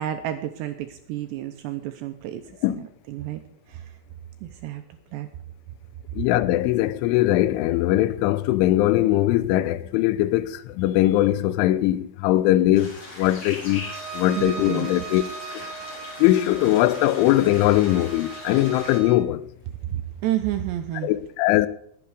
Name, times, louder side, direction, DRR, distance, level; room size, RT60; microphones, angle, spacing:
voice 1, 0.0-2.4 2.8-3.4 3.7-3.9 4.4-4.8 5.1-5.3 14.4-14.9 19.9-21.1, right 12 dB, 80° right, 2.6 m, -30 dB
voice 2, 6.2-13.9 14.1-15.2 15.5-15.7 16.2-19.4 21.0-21.7, left 15 dB, 80° left, 3.1 m, -21 dB
sound 1, 12.7-19.0, left 2 dB, 40° left, 5.8 m, -40 dB
Bowed string instrument, 13.7-19.3, right 5 dB, 10° left, 2.2 m, -38 dB
19.5 x 8.1 x 4.9 m
omnidirectional pair, 5.6 m